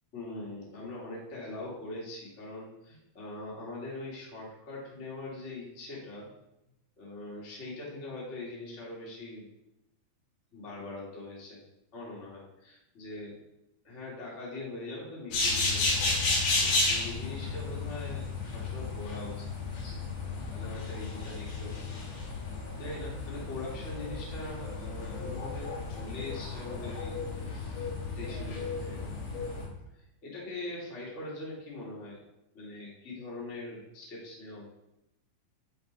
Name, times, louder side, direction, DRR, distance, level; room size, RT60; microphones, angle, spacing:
voice 1, 0.1-6.3 7.0-9.5 10.5-11.6 11.9-13.3 13.8-19.8 20.5-22.0 22.8-29.0 29.9-32.2 32.5-34.6, left 2 dB, 60° left, -4 dB, 0.7 m, -42 dB
sound 1, 15.3-29.6, left 3 dB, 80° left, 4.8 m, -33 dB
10.5 x 4.0 x 4.4 m, 0.89 s
omnidirectional pair, 5.4 m